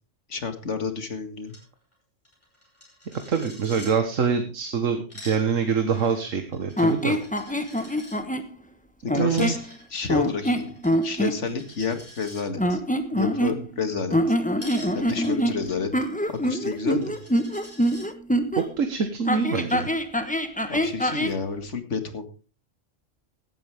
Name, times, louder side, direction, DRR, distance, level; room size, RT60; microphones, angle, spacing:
voice 1, 0.3-1.6 9.0-9.6 9.9-10.7 11.0-12.8 13.1-14.4 14.9-15.9 16.3-17.2 20.7-22.3, left 5 dB, 70° left, 8 dB, 2.2 m, -30 dB
Coin (dropping), 1.5-1.6 1.9-2.0 2.2-3.9 4.9-8.2 9.1-12.4 14.6-18.1, left 1 dB, 25° left, 6.0 m, -47 dB
voice 2, 3.1-7.2 7.5-7.9 9.1-9.5 13.5-13.6 18.6-19.9, right 6 dB, 85° right, 7 dB, 1.7 m, -25 dB
sound 1, 6.8-8.5 9.1-9.7 10.1-11.4 12.6-13.8 14.1-18.7 19.3-21.4, equal, 5° left, 1.1 m, -25 dB
17.0 x 12.5 x 3.5 m, 0.33 s
omnidirectional pair, 1.3 m